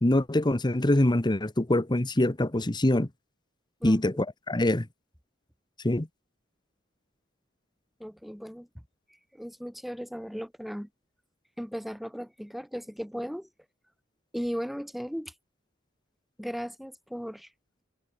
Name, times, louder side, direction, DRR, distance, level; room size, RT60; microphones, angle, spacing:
voice 1, 0.0-3.1 3.8-4.9 5.8-6.1, left 1 dB, 25° left, 1.1 m, -24 dB
voice 2, 8.0-8.7 9.3-10.9 11.6-13.5 14.3-15.3 16.4-17.5, equal, ahead, 3.8 m, -36 dB
head